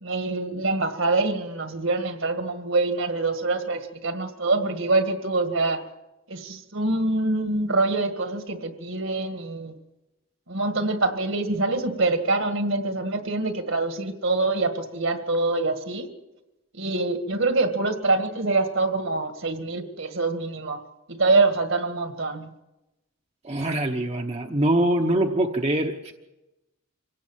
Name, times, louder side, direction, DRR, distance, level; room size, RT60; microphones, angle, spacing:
voice 1, 0.0-5.8 6.3-9.7 10.5-16.1 16.7-20.8 21.1-22.5, right 3 dB, 65° right, 8 dB, 1.9 m, -25 dB
voice 2, 23.4-26.1, right 1 dB, 30° right, 3 dB, 1.0 m, -23 dB
25.5 x 17.5 x 7.4 m, 0.99 s
head